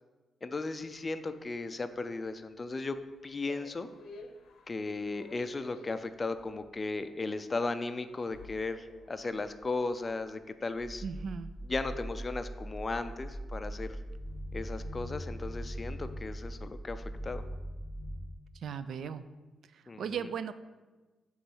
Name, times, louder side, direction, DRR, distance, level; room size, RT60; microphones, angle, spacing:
voice 1, 0.4-3.0 3.2-3.9 4.7-11.0 11.7-14.0 14.5-17.4 19.9-20.3, left 3 dB, 30° left, 11 dB, 0.4 m, -36 dB
sound 1, 0.8-16.3, left 4 dB, 80° left, 0.6 m, -56 dB
sound 2, 10.8-18.2, equal, 40° right, 1.7 m, -40 dB
voice 2, 11.0-11.5 18.6-19.2 19.7-20.5, right 7 dB, 70° right, 13 dB, 0.3 m, -37 dB
6.9 x 3.1 x 5.4 m, 1.2 s
cardioid pair, 115°, 0 cm